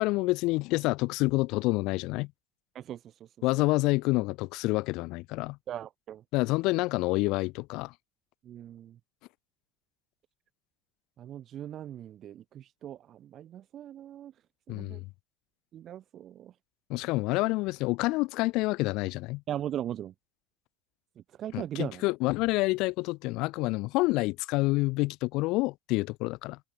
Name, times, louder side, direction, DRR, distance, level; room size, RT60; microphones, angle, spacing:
voice 1, 0.0-2.3 3.4-5.6 6.3-7.9 14.7-15.1 16.9-19.4 21.5-26.6, left 22 dB, 60° left, 0.4 m, -28 dB
voice 2, 2.7-3.4 5.7-6.2 8.4-9.0 11.2-14.3 14.7-15.0 15.7-16.5 19.5-20.1 21.2-22.0, right 11 dB, 45° right, 1.4 m, -39 dB
hypercardioid pair, 75°, 0 cm